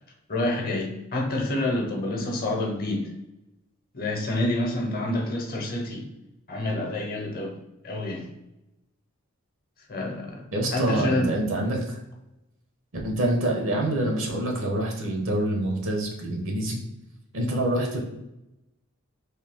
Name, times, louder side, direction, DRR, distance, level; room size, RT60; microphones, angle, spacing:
voice 1, 0.3-3.0 3.9-6.0 6.5-7.6 7.8-8.3 9.9-10.4 10.7-11.3, left 1 dB, 45° left, 1 dB, 0.8 m, -28 dB
voice 2, 10.5-12.0 13.0-16.8 17.3-18.0, right 1 dB, 65° right, 1 dB, 0.9 m, -26 dB
3.2 x 2.8 x 3.5 m, 0.92 s
head